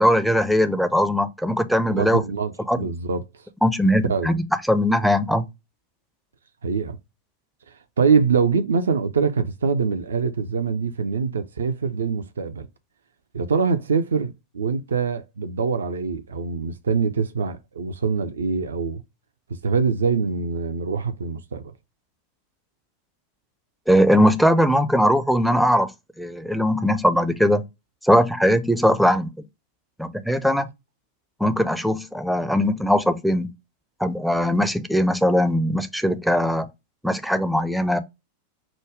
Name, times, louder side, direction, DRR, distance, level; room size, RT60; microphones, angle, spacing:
voice 1, 0.0-2.2 2.7-2.8 3.6-4.3 4.7-5.4 23.9-25.9 26.2-27.6 28.0-29.3 30.0-30.7 31.4-33.5 34.0-36.7 37.0-38.0, equal, ahead, 0.5 m, -20 dB
voice 2, 1.9-3.2 4.0-4.4 6.6-7.0 7.7-12.7 13.3-19.0 19.5-21.7, right 5 dB, 70° right, 0.4 m, -24 dB
5.0 x 2.2 x 4.6 m
figure-of-eight pair, 90°, 0 cm